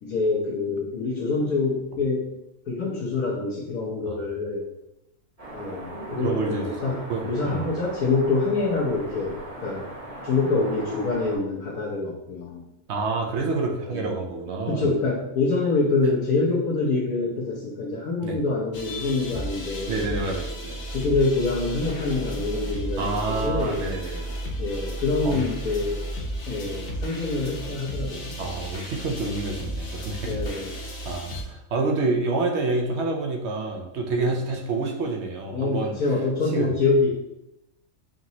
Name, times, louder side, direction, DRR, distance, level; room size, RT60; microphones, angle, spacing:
voice 1, 0.0-2.2 2.7-4.6 5.5-9.8 10.2-12.6 13.8-14.1 14.7-20.2 20.9-23.1 23.4-23.8 24.6-26.0 26.5-28.4 30.2-30.7 34.1-34.2 35.5-37.1, left 3 dB, 85° left, -4 dB, 1.2 m, -26 dB
sound 1, 5.4-11.4, right 1 dB, 30° right, 1.1 m, -39 dB
voice 2, 6.2-7.8 12.9-14.9 18.2-18.4 19.9-20.9 23.0-24.4 25.2-25.4 28.4-30.3 31.0-35.9 36.5-36.7, right 3 dB, 65° right, 2 dB, 0.8 m, -28 dB
sound 2, 18.7-31.4, right 1 dB, 55° left, 1.0 m, -33 dB
5.0 x 2.9 x 2.7 m, 0.87 s
omnidirectional pair, 1.5 m